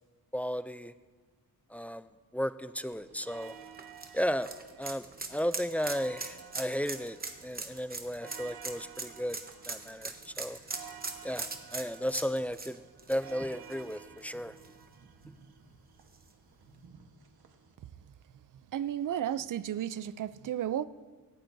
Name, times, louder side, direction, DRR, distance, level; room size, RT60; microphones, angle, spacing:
voice 1, 0.3-0.9 1.7-2.1 2.3-3.5 4.1-4.5 4.8-5.0 5.3-7.2 7.4-9.4 9.7-10.6 11.2-12.8 13.1-14.5, equal, 5° left, 12 dB, 0.3 m, -34 dB
sound 1, 2.9-17.8, right 7 dB, 80° right, 1.3 m, -53 dB
sound 2, 3.4-14.2 14.6-14.7 16.1-16.2, right 3 dB, 25° right, 1.0 m, -40 dB
voice 2, 18.7-20.8, right 10 dB, 60° right, 16 dB, 0.5 m, -33 dB
17.5 x 16.0 x 2.7 m, 1.4 s
wide cardioid pair, 125°, 37 cm